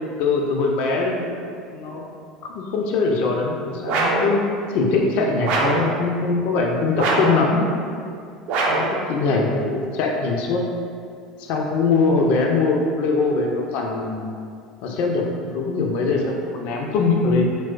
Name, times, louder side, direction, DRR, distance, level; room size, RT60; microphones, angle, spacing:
voice 1, 0.2-1.3 1.7-2.0 2.4-4.4 4.7-7.6 8.7-10.7 11.4-14.3 14.8-17.4, left 4 dB, 45° left, 0 dB, 0.3 m, -22 dB
sound 1, 3.9-4.3 5.4-5.9 7.0-7.4 8.5-9.0, right 3 dB, 45° right, 0.3 m, -21 dB
3.0 x 2.0 x 2.4 m, 2.3 s
figure-of-eight pair, 70°, 3 cm